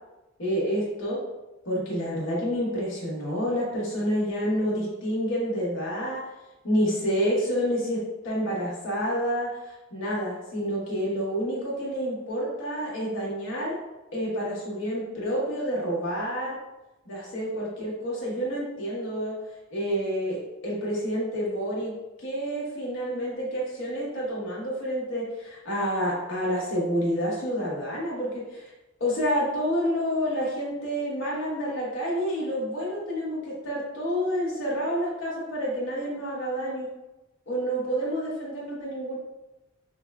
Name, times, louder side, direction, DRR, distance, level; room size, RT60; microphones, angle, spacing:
voice 1, 0.4-1.2 1.6-6.2 6.6-9.5 9.9-13.8 14.1-16.6 17.0-19.3 19.7-21.9 22.2-28.7 29.0-36.9 37.5-39.2, equal, 70° left, -5 dB, 1.2 m, -28 dB
5.1 x 2.2 x 2.4 m, 1.0 s
head